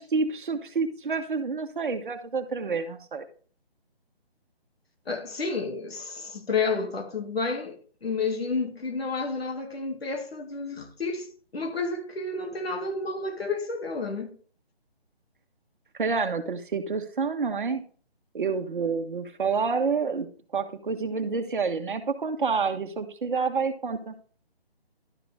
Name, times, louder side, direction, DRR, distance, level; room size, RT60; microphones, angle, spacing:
voice 1, 0.0-3.2 15.9-17.8 18.3-20.3 20.5-24.1, right 5 dB, 55° right, 1.3 m, -28 dB
voice 2, 5.1-14.4, left 4 dB, 75° left, 2.4 m, -31 dB
12.0 x 4.9 x 3.6 m
hypercardioid pair, 165°, 31 cm